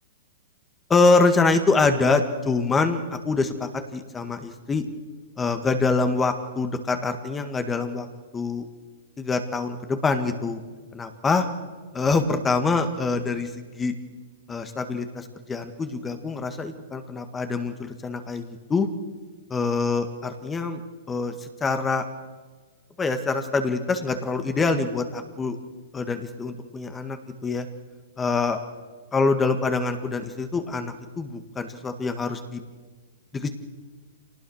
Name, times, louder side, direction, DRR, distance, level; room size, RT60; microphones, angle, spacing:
voice 1, 0.9-4.8 5.4-8.1 8.3-8.6 9.2-10.6 10.9-11.5 11.9-13.9 14.5-18.9 19.5-20.8 21.1-22.0 23.0-25.6 25.9-27.2 27.4-27.7 28.2-28.6 29.1-32.6 33.3-33.5, left 3 dB, 15° left, 8 dB, 1.7 m, -25 dB
25.0 x 19.0 x 6.5 m, 1.4 s
hypercardioid pair, 130°, 0 cm